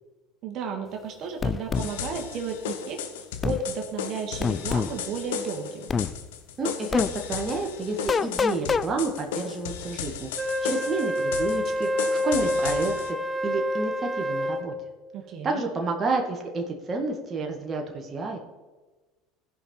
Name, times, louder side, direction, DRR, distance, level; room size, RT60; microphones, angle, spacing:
voice 1, 0.4-5.9 15.1-15.6, right 4 dB, 55° right, 3 dB, 1.7 m, -33 dB
sound 1, 1.4-1.9 3.4-3.6 4.4-4.9 5.9-6.1 6.9-7.1 8.1-8.9, left 5 dB, 30° left, 0.4 m, -25 dB
sound 2, 1.7-13.1, left 8 dB, 85° left, 0.9 m, -36 dB
voice 2, 6.6-10.3 10.6-13.2 13.4-14.7 15.4-18.4, right 3 dB, 30° right, 1 dB, 1.7 m, -30 dB
Wind instrument woodwind instrument, 10.4-14.7, left 1 dB, 15° right, 1.5 m, -27 dB
15.5 x 5.6 x 4.4 m, 1.2 s
hypercardioid pair, 85°, 0 cm